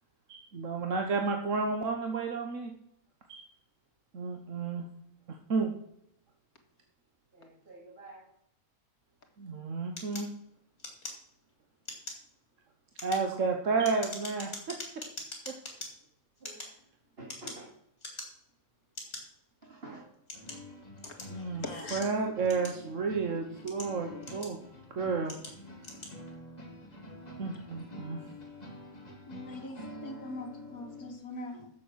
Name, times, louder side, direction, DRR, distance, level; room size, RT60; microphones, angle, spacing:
voice 1, 0.3-2.7 3.3-3.5 4.1-4.8 5.5-5.7 9.4-10.3 13.0-14.8 15.5-15.6 21.3-21.6 21.9-24.6 25.0-25.3 27.4-28.2, right 4 dB, 60° right, 3 dB, 1.4 m, -31 dB
voice 2, 7.3-8.3 16.4-16.6 17.2-17.7 19.6-20.2, right 2 dB, 40° right, -2 dB, 2.4 m, -49 dB
sound 1, 10.0-11.5 11.8-12.3 12.8-15.9 16.4-17.7 18.0-18.5 19.0-19.2 19.9-21.4 21.9-23.1 23.5-24.7 25.3-25.6 25.8-26.2, left 2 dB, 55° left, 3.9 m, -43 dB
sound 2, 20.3-31.1, left 1 dB, 30° left, 1.9 m, -47 dB
voice 3, 21.0-22.0 29.3-31.7, left 2 dB, 75° left, 4 dB, 2.2 m, -42 dB
12.0 x 7.6 x 6.3 m, 0.76 s
omnidirectional pair, 1.5 m